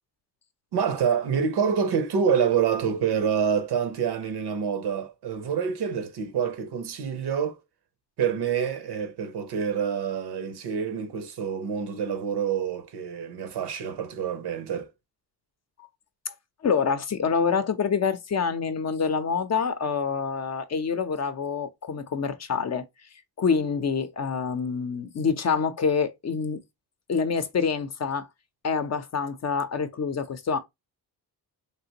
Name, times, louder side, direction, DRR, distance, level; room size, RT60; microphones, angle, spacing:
voice 1, 0.7-7.6 8.2-14.9, right 7 dB, 75° right, 0.8 m, -27 dB
voice 2, 16.6-22.8 23.4-26.6 27.1-28.3 28.6-30.6, left 5 dB, 40° left, 0.6 m, -26 dB
3.3 x 2.5 x 2.8 m
cardioid pair, 80°, 40 cm